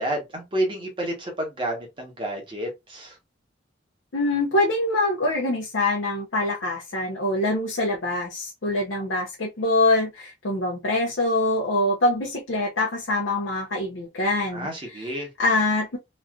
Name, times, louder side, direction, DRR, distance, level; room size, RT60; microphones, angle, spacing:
voice 1, 0.0-3.2 14.5-15.3, right 1 dB, 25° right, 1.1 m, -30 dB
voice 2, 4.1-14.7 14.9-15.1 15.4-16.0, left 2 dB, 90° left, 0.8 m, -24 dB
3.1 x 2.6 x 2.4 m
head